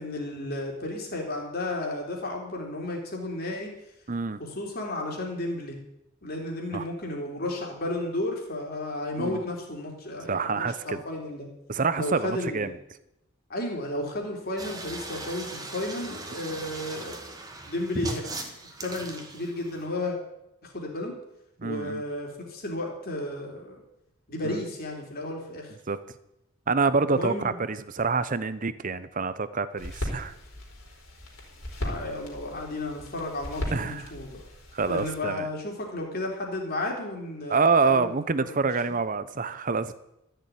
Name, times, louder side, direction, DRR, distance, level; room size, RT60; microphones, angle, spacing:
voice 1, 0.0-3.7 4.6-5.8 6.2-11.5 12.0-12.7 13.5-17.1 17.6-18.5 18.8-20.2 20.6-21.1 21.6-23.8 24.3-25.7 27.0-27.6 31.8-34.4 34.9-38.1 38.5-39.0, left 1 dB, 45° left, 0 dB, 3.6 m, -33 dB
voice 2, 4.1-4.4 6.7-6.8 9.2-9.4 10.3-11.0 11.7-12.7 21.6-22.0 24.4-24.6 25.9-26.0 26.7-30.3 33.7-34.0 34.7-35.5 37.5-39.9, right 4 dB, 40° right, 14 dB, 0.7 m, -26 dB
sound 1, 14.6-19.9, right 2 dB, 20° right, 1.7 m, -38 dB
sound 2, 29.8-35.2, left 1 dB, 70° left, 4.3 m, -37 dB
14.0 x 6.9 x 9.4 m, 0.85 s
head